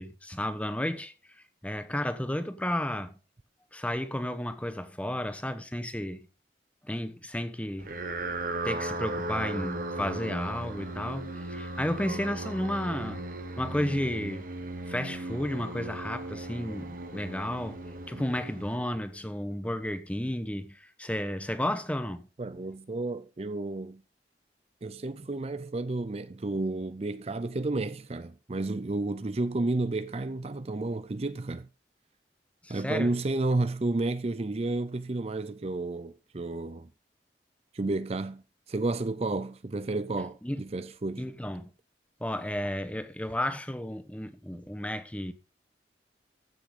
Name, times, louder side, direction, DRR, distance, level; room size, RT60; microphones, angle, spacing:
voice 1, 0.0-3.1 3.7-6.3 6.8-7.9 8.6-13.2 13.6-14.5 14.9-17.8 18.1-22.3 32.6-33.1 40.4-40.6 41.2-41.7 42.2-45.3, left 1 dB, 10° left, 1.0 m, -32 dB
sound 1, 7.8-19.3, right 2 dB, 50° right, 1.3 m, -37 dB
voice 2, 22.4-24.0 24.8-31.7 32.7-36.9 37.7-41.3, right 2 dB, 35° right, 0.5 m, -31 dB
14.5 x 6.2 x 5.0 m
head